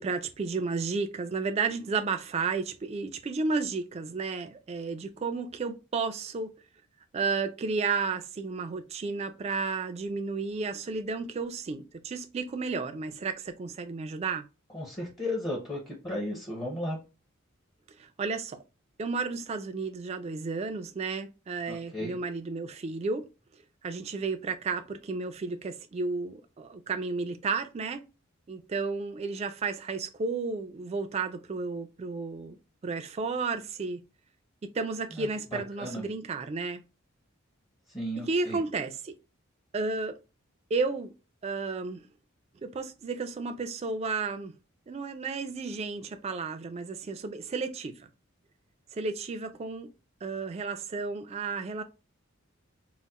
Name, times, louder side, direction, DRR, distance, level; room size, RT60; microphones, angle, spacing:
voice 1, 0.0-6.5 7.1-14.4 18.0-18.6 19.0-23.2 23.8-28.0 28.5-32.6 32.8-34.0 34.6-36.8 38.2-39.2 39.7-40.1 40.7-41.1 41.4-42.0 42.6-44.5 44.9-48.1 48.9-49.9 50.2-51.8, right 4 dB, 30° right, 0.3 m, -32 dB
voice 2, 14.7-17.0 21.7-22.2 35.1-36.0 37.9-38.6, left 1 dB, 20° left, 0.6 m, -35 dB
3.9 x 2.0 x 2.2 m
head